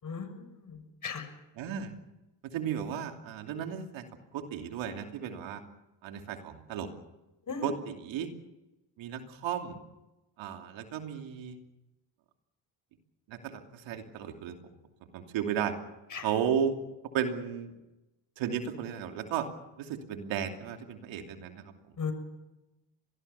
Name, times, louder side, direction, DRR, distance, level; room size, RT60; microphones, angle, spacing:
voice 1, 0.0-1.3 7.5-7.7 16.1-16.3 22.0-22.1, left 5 dB, 40° left, 9 dB, 6.3 m, -37 dB
voice 2, 1.5-1.9 2.4-4.1 4.3-5.6 6.0-6.9 7.6-8.3 9.0-9.8 10.4-11.6 13.3-14.6 15.1-15.7 16.2-16.8 17.1-17.7 18.4-19.5 19.8-21.7, right 8 dB, 70° right, 5 dB, 3.0 m, -34 dB
24.5 x 20.0 x 7.0 m, 0.99 s
supercardioid pair, 70°, 47 cm